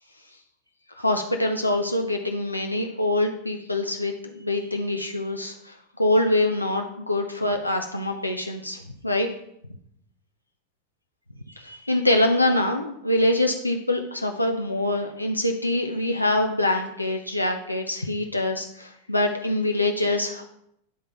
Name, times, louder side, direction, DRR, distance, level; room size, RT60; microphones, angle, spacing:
voice 1, 1.0-9.3 11.5-20.4, left 1 dB, 85° left, 3 dB, 0.5 m, -25 dB
10.0 x 3.7 x 4.2 m, 0.75 s
figure-of-eight pair, 90°, 0 cm